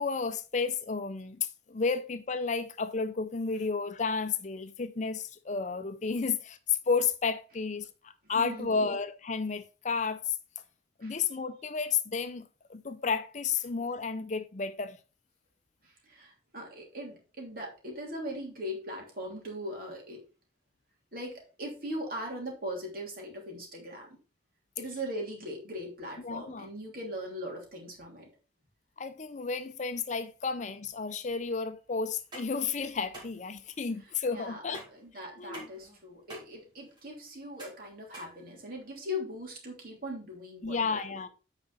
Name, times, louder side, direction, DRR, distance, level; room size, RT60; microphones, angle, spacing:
voice 1, 0.0-10.4 11.0-15.0 26.2-26.7 29.0-34.8 35.4-35.7 40.6-41.3, left 5 dB, 40° left, 0.6 m, -32 dB
voice 2, 8.3-9.0 11.0-11.2 15.8-20.2 21.1-24.2 24.8-28.3 34.3-34.6 34.9-41.2, equal, 55° right, 3.2 m, -40 dB
sound 1, 32.1-39.0, right 1 dB, 25° right, 3.2 m, -50 dB
9.1 x 5.0 x 4.1 m
head